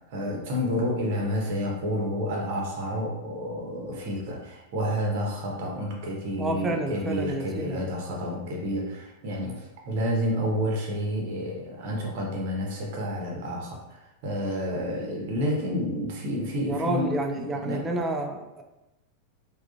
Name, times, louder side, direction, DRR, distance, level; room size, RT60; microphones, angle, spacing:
voice 1, 0.1-13.8 14.2-17.1 17.4-17.8, equal, 50° right, -1 dB, 0.8 m, -29 dB
voice 2, 6.4-7.8 9.4-9.6 16.6-18.6, right 2 dB, 15° right, 4 dB, 0.4 m, -30 dB
3.5 x 2.3 x 2.4 m, 0.97 s
figure-of-eight pair, 90°, 0 cm